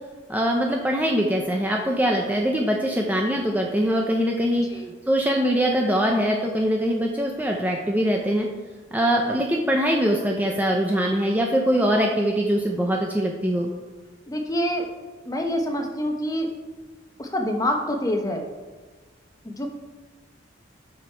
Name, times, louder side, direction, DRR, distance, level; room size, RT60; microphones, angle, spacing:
voice 1, 0.3-4.7 5.1-8.5 8.9-13.7, equal, 10° right, 0 dB, 0.5 m, -22 dB
voice 2, 14.3-14.9 15.3-16.5 17.2-18.5 19.4-19.7, equal, 20° left, 3 dB, 0.9 m, -26 dB
7.6 x 6.1 x 4.5 m, 1.3 s
head